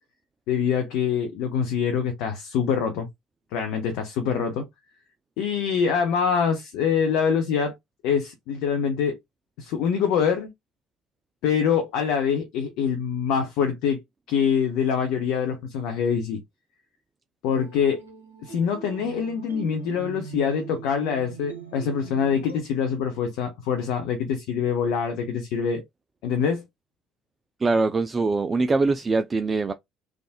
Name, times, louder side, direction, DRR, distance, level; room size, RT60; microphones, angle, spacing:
voice 1, 0.5-3.1 3.5-4.7 5.4-7.7 8.0-9.2 9.6-10.5 11.4-14.0 14.3-16.4 17.4-18.0 18.4-25.8 26.2-26.6, left 7 dB, 65° left, 0.7 m, -25 dB
sound 1, 17.5-22.6, right 6 dB, 90° right, 0.8 m, -41 dB
voice 2, 27.6-29.7, right 3 dB, 30° right, 0.4 m, -23 dB
3.5 x 2.4 x 2.3 m
figure-of-eight pair, 55°, 0 cm